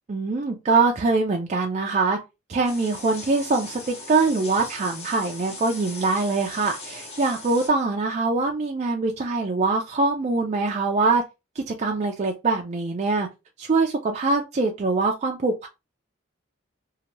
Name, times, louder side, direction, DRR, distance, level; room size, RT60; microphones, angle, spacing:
voice 1, 0.1-2.2 2.5-11.2 11.6-13.3 13.6-15.7, right 3 dB, 35° right, 0.4 m, -23 dB
sound 1, 2.6-7.7, left 2 dB, 35° left, 0.9 m, -39 dB
2.7 x 2.2 x 2.9 m
head